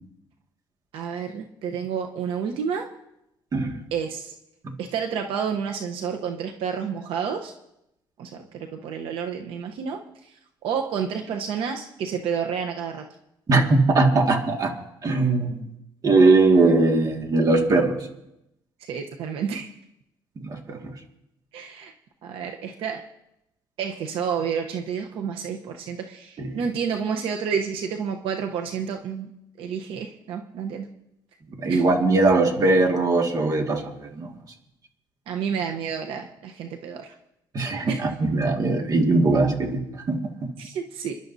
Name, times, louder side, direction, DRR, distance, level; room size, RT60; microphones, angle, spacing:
voice 1, 0.9-2.9 3.9-4.3 4.8-7.5 8.2-10.3 10.6-13.1 18.9-19.7 21.5-21.9 22.2-23.0 23.8-29.3 29.6-30.8 31.7-31.8 35.3-37.1 37.9-38.0 40.6-41.2, right 7 dB, 85° right, 4 dB, 0.9 m, -30 dB
voice 2, 3.5-3.8 13.5-14.7 15.0-15.6 16.0-18.0 20.4-20.9 26.4-26.5 31.6-34.3 37.5-40.5, right 3 dB, 45° right, 3 dB, 2.0 m, -20 dB
30.0 x 11.0 x 2.7 m, 0.85 s
cardioid pair, 115°, 9 cm